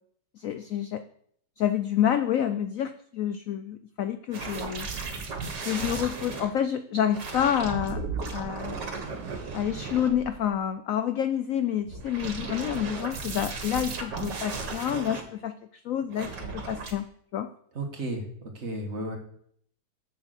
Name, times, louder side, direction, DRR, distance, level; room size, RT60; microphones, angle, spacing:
voice 1, 0.4-1.0 1.6-4.9 5.7-8.0 8.3-8.8 9.5-15.5 15.8-17.1 17.3-17.5, left 10 dB, 85° left, 10 dB, 0.7 m, -28 dB
sound 1, 4.3-6.5 7.1-10.5 11.8-15.2 16.1-16.9, right 4 dB, 65° right, 2.1 m, -35 dB
voice 2, 17.8-19.2, right 1 dB, 40° right, 1 dB, 1.9 m, -33 dB
7.5 x 7.0 x 6.6 m, 0.65 s
omnidirectional pair, 2.0 m